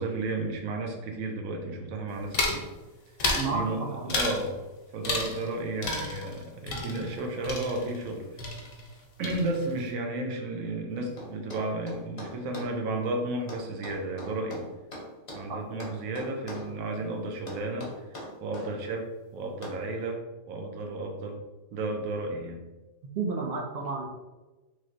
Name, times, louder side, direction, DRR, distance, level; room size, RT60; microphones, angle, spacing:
voice 1, 0.0-2.6 3.5-4.5 4.9-8.6 9.2-14.7 15.3-20.2 20.5-21.4 21.7-22.6, right 2 dB, 90° right, 3 dB, 1.0 m, -33 dB
sound 1, 2.3-2.7 3.2-3.5 4.1-4.5 5.0-5.5 5.8-8.1 8.4-9.0 9.2-9.8, left 3 dB, 85° left, 1.1 m, -31 dB
voice 2, 3.3-3.7 3.9-4.1 15.5-15.6 23.1-24.1, right 4 dB, 60° right, 0 dB, 0.7 m, -31 dB
sound 2, 11.2-12.7 13.5-15.5 15.8-16.7 17.5-18.7 19.6-19.8, left 1 dB, 40° left, 0.5 m, -41 dB
3.1 x 3.1 x 2.5 m, 1.2 s
omnidirectional pair, 1.4 m